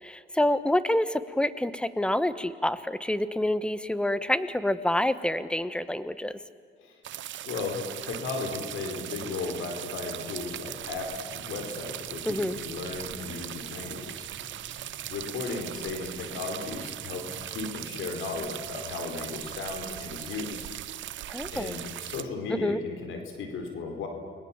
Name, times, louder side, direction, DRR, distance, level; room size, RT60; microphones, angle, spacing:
voice 1, 0.0-6.4 12.3-12.6 21.3-21.8 22.5-22.8, left 1 dB, 5° left, 13 dB, 1.2 m, -27 dB
sound 1, 7.0-22.2, right 12 dB, 70° right, 0.8 m, -39 dB
voice 2, 7.4-14.3 15.1-20.6 21.5-24.1, left 4 dB, 80° left, 4 dB, 4.3 m, -35 dB
sound 2, 10.6-18.6, equal, 25° left, 6.8 m, -53 dB
29.5 x 21.5 x 7.3 m, 2.2 s
cardioid pair, 90°, 20 cm